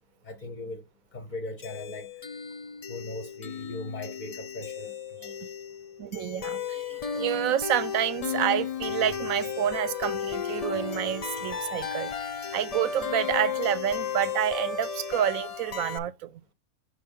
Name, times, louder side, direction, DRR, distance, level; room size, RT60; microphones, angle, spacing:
voice 1, 0.2-0.8 1.1-2.1 2.9-5.3, left 2 dB, 35° left, 0.9 m, -39 dB
sound 1, 1.6-16.0, left 7 dB, 65° left, 0.3 m, -34 dB
voice 2, 6.0-12.1 12.5-16.4, right 10 dB, 80° right, 1.0 m, -29 dB
6.2 x 3.0 x 5.4 m
omnidirectional pair, 1.5 m